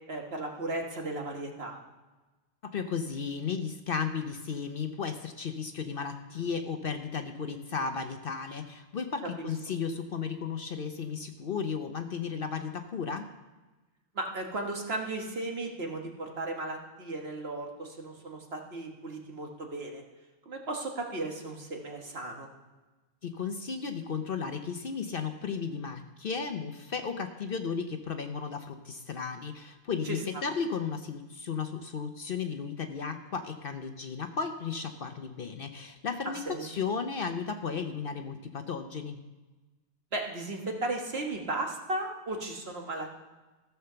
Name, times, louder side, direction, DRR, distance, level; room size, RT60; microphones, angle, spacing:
voice 1, 0.1-1.7 9.4-9.5 14.2-20.0 20.5-22.5 30.0-30.2 36.5-36.7 40.1-43.2, right 2 dB, 55° right, 2 dB, 1.7 m, -35 dB
voice 2, 2.7-13.3 23.2-39.2, left 6 dB, 55° left, 7 dB, 0.8 m, -34 dB
15.0 x 5.8 x 6.8 m, 1.2 s
omnidirectional pair, 1.3 m